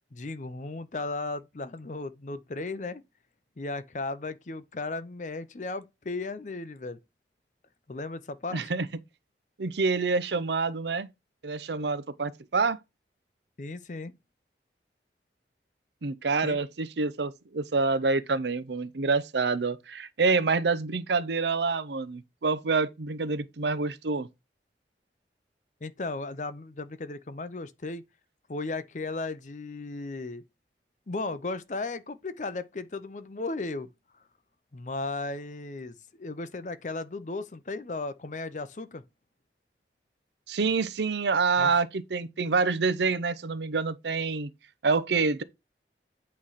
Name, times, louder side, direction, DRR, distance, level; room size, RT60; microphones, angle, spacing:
voice 1, 0.1-3.0 3.6-7.0 7.9-8.6 13.6-14.1 16.4-16.6 25.8-28.0 28.5-30.4 31.1-33.9 34.7-39.0 41.6-41.7, left 3 dB, 45° left, 0.6 m, -35 dB
voice 2, 8.5-8.9 9.6-11.1 11.4-12.8 16.0-24.3 40.5-44.5 44.8-45.4, right 4 dB, 80° right, 0.6 m, -27 dB
8.5 x 3.2 x 5.6 m
head